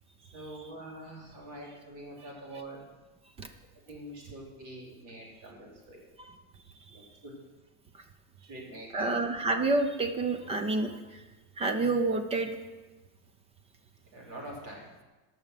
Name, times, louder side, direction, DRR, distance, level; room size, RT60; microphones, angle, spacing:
voice 1, 0.3-2.8 3.9-6.0 6.9-7.3 8.4-9.1 14.1-14.9, right 1 dB, 45° right, -2 dB, 3.7 m, -45 dB
voice 2, 8.9-10.9 11.6-12.5, right 3 dB, 15° right, 8 dB, 0.5 m, -28 dB
12.5 x 6.4 x 6.7 m, 1.2 s
cardioid pair, 175°, 43 cm